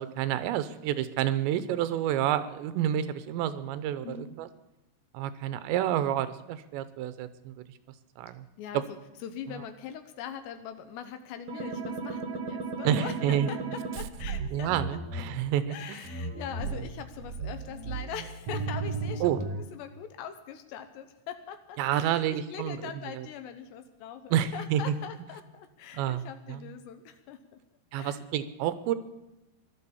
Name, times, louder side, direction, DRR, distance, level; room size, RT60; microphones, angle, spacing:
voice 1, 0.0-4.5 5.1-7.6 8.2-8.5 8.7-8.8 12.8-13.5 14.5-16.0 16.7-16.8 19.2-19.4 21.8-22.8 23.2-23.3 24.3-25.0 25.9-26.7 27.9-29.0, right 11 dB, 90° right, 12 dB, 3.1 m, -29 dB
voice 2, 4.0-4.5 8.6-14.7 15.7-27.6 27.9-28.2, left 8 dB, 80° left, 8 dB, 3.0 m, -42 dB
sound 1, 11.5-15.2 16.0-19.6, right 4 dB, 60° right, 1.7 m, -35 dB
16.5 x 12.0 x 7.1 m, 0.95 s
omnidirectional pair, 5.0 m